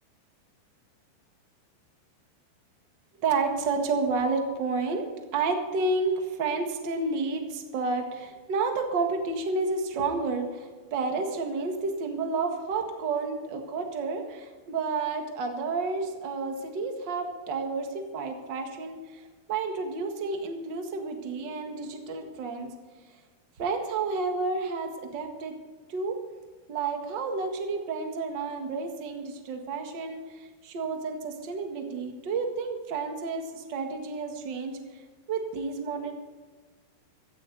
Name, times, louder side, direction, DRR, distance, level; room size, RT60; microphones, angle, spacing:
voice 1, 3.2-5.0 5.3-22.7 23.6-25.5 25.9-26.2 26.7-35.0 35.3-36.1, right 4 dB, 50° right, 3 dB, 1.4 m, -30 dB
17.0 x 13.5 x 4.0 m, 1.4 s
omnidirectional pair, 4.8 m